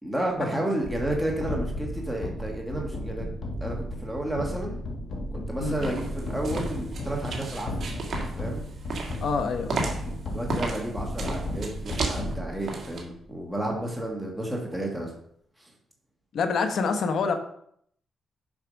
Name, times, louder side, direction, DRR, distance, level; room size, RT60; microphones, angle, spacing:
voice 1, 0.0-3.3 3.6-4.8 5.3-7.9 8.3-8.6 10.3-15.1 15.6-15.7, right 1 dB, ahead, -2 dB, 1.7 m, -31 dB
sound 1, 0.8-12.9, left 1 dB, 45° left, 1.6 m, -34 dB
sound 2, 5.8-13.0, right 3 dB, 45° right, 1.7 m, -34 dB
voice 2, 9.2-9.9 16.3-17.3, left 5 dB, 60° left, 7 dB, 1.0 m, -27 dB
7.3 x 4.9 x 5.2 m, 0.67 s
cardioid pair, 135°, 0 cm